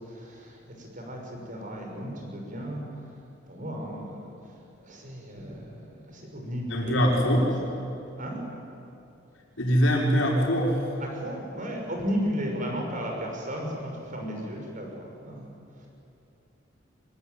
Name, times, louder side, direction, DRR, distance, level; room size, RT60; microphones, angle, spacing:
voice 1, 0.0-3.2 3.5-7.0 7.7-7.9 8.1-8.4 11.0-15.9, equal, 45° right, 1 dB, 6.1 m, -35 dB
voice 2, 6.7-7.5 9.6-10.8, equal, 85° left, -1 dB, 5.6 m, -22 dB
25.0 x 21.0 x 9.4 m, 2.7 s
head